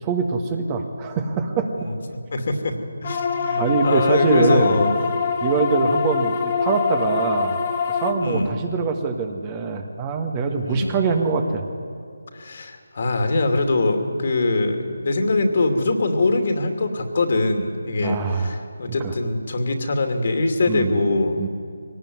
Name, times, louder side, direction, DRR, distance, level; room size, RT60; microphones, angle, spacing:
voice 1, 0.0-1.9 3.6-4.8 5.4-7.5 7.9-11.6 18.0-18.6 19.0-19.1 20.7-21.0 21.4-21.5, right 4 dB, 20° right, 5 dB, 1.6 m, -23 dB
voice 2, 2.3-2.8 3.0-4.9 8.2-8.5 10.6-10.9 12.3-21.4, left 2 dB, 50° left, 5 dB, 2.7 m, -22 dB
sound 1, 3.0-8.1, left 6 dB, 35° left, 1.8 m, -24 dB
22.0 x 18.5 x 9.5 m, 2.3 s
figure-of-eight pair, 160°, 0 cm